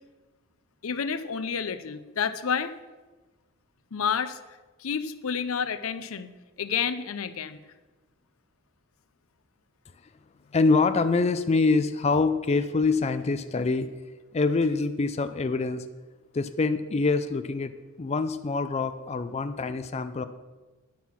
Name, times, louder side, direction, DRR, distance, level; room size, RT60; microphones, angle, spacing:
voice 1, 0.8-2.7 3.9-4.4 4.8-6.3 6.6-7.6, left 6 dB, 85° left, 12 dB, 0.6 m, -29 dB
voice 2, 10.5-13.9 14.3-15.8 16.3-17.7 18.0-20.2, left 3 dB, 30° left, 10 dB, 0.4 m, -25 dB
10.0 x 7.6 x 5.9 m, 1.2 s
head